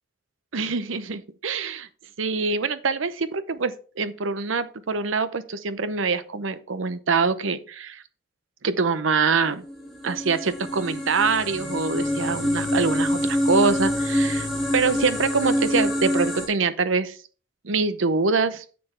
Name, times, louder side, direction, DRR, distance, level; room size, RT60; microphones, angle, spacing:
voice 1, 0.5-1.9 2.2-8.0 8.6-9.6 10.0-14.5 14.7-17.2 17.6-18.6, right 4 dB, 80° right, 13 dB, 0.7 m, -24 dB
sound 1, 9.6-16.5, equal, ahead, 2.4 m, -25 dB
9.4 x 6.8 x 3.3 m, 0.39 s
head